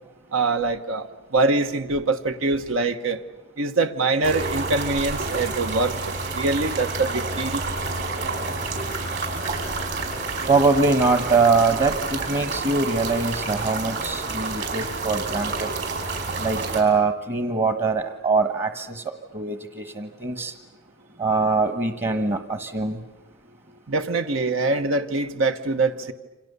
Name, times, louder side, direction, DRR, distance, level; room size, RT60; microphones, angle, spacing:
voice 1, 0.3-1.1 1.3-3.2 3.6-7.6 23.9-26.1, right 3 dB, 90° right, 8 dB, 1.3 m, -24 dB
sound 1, 4.2-16.8, right 3 dB, 60° right, 5.3 m, -29 dB
voice 2, 10.5-15.7 16.4-19.0 19.3-20.5 21.2-23.0, right 4 dB, 35° right, 8 dB, 1.2 m, -23 dB
29.5 x 26.0 x 6.9 m, 1.1 s
head